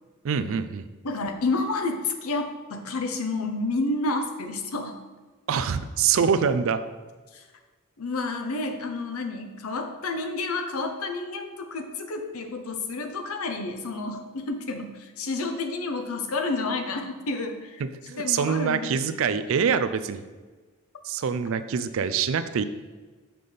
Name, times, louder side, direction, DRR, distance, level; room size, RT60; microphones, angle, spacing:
voice 1, 0.2-0.9 5.5-6.8 17.8-20.2 21.0-22.6, right 6 dB, 65° right, 11 dB, 0.4 m, -25 dB
voice 2, 1.0-5.0 7.3-7.4 8.0-17.8 18.2-19.3, left 3 dB, 80° left, 6 dB, 0.7 m, -30 dB
5.9 x 5.4 x 3.3 m, 1.3 s
head